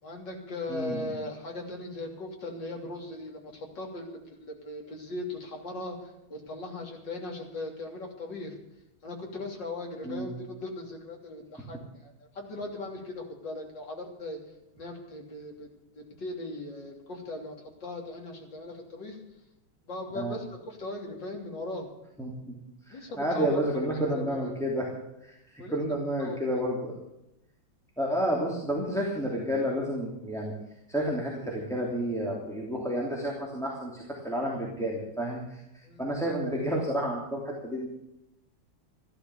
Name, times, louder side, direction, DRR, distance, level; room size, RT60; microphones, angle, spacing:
voice 1, 0.0-8.6 9.0-14.4 14.7-15.7 15.9-17.5 17.8-19.2 19.8-21.9 22.9-23.6 23.9-24.4 25.6-26.4 35.8-36.0, left 2 dB, 60° left, 1 dB, 3.8 m, -39 dB
voice 2, 0.7-1.1 10.0-10.3 20.1-20.4 22.2-22.6 22.9-24.9 25.2-26.9 28.0-30.5 30.9-35.6 36.0-37.9, equal, ahead, -3 dB, 2.8 m, -30 dB
15.0 x 12.0 x 7.1 m, 0.86 s
omnidirectional pair, 2.2 m